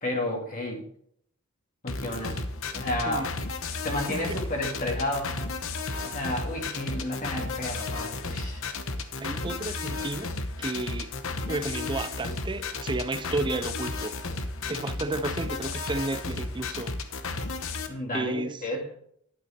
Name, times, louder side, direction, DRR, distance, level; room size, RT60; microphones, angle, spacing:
voice 1, 0.0-0.8 1.8-2.4 2.7-3.3 3.8-5.4 6.0-8.6 15.0-15.1 17.9-18.9, left 1 dB, 35° left, 2.2 m, -31 dB
sound 1, 1.9-17.9, left 3 dB, 65° left, 1.0 m, -33 dB
voice 2, 4.1-4.5 9.2-11.1 11.5-14.2 14.7-17.0 18.1-18.7, right 2 dB, 20° right, 0.6 m, -32 dB
11.0 x 8.8 x 4.3 m
head